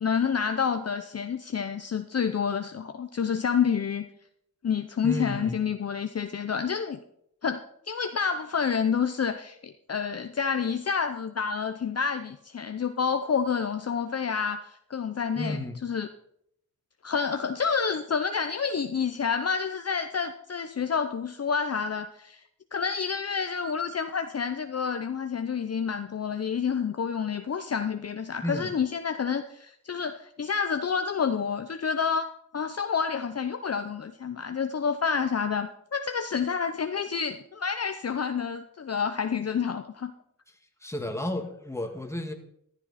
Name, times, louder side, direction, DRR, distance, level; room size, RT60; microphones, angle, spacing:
voice 1, 0.0-4.1 4.6-7.0 7.4-7.6 7.9-16.1 17.0-22.4 22.7-32.3 32.5-40.1, left 6 dB, 45° left, 8 dB, 0.7 m, -29 dB
voice 2, 5.0-5.6 15.4-15.8 28.4-28.7 40.8-42.3, left 1 dB, 10° left, 4 dB, 1.9 m, -32 dB
14.5 x 11.5 x 4.2 m, 0.72 s
wide cardioid pair, 90°, 35 cm